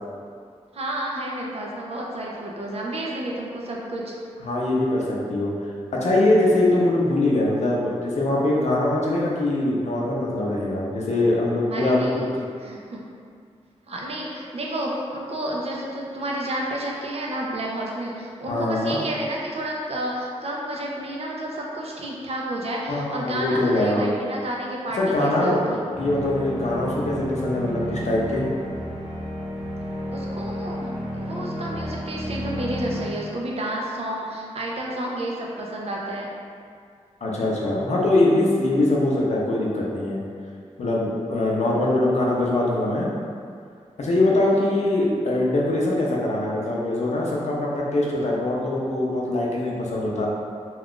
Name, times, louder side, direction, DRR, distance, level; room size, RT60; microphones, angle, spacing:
voice 1, 0.7-4.1 11.7-12.2 12.6-13.0 13.9-25.8 30.1-36.3 44.5-44.6, right 1 dB, 60° right, -3 dB, 0.5 m, -31 dB
voice 2, 4.4-5.5 5.9-12.0 18.5-19.0 22.9-24.1 25.0-28.4 37.2-40.2 40.8-43.1 44.0-50.3, left 1 dB, 70° left, -4 dB, 0.5 m, -22 dB
sound 1, 25.9-33.0, equal, 10° right, 0.9 m, -32 dB
2.4 x 2.3 x 3.6 m, 2.2 s
wide cardioid pair, 145°, 12 cm